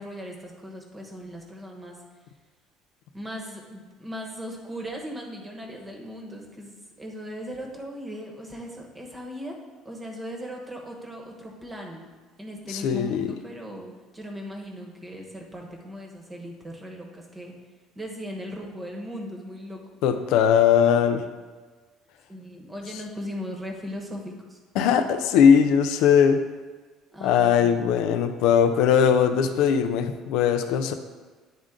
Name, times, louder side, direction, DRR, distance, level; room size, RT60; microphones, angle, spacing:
voice 1, 0.0-2.0 3.1-9.6 9.8-17.5 17.9-19.8 22.3-24.9 27.1-27.9, equal, 15° right, 1 dB, 1.1 m, -38 dB
voice 2, 12.7-13.3 20.0-21.2 24.8-26.4 27.2-30.9, left 8 dB, 70° left, 9 dB, 0.5 m, -20 dB
10.0 x 3.7 x 3.8 m, 1.4 s
cardioid pair, 145°, 0 cm